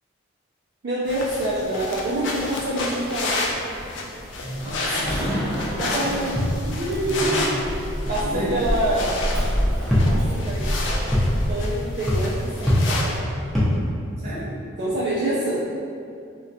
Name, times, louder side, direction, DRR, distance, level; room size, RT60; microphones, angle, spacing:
voice 1, 0.8-3.5 5.6-7.4 8.1-9.1 10.0-10.7 11.0-11.2 11.5-13.2 14.8-15.6, right 1 dB, 50° right, -8 dB, 0.4 m, -26 dB
sound 1, 1.1-13.2, left 2 dB, 65° left, 0.4 m, -31 dB
voice 2, 4.4-5.7 7.1-7.5 8.2-8.6 14.2-14.6, equal, 30° right, -9 dB, 0.8 m, -30 dB
sound 2, 4.5-13.8, equal, ahead, 0.5 m, -25 dB
3.7 x 2.1 x 2.6 m, 2.5 s
head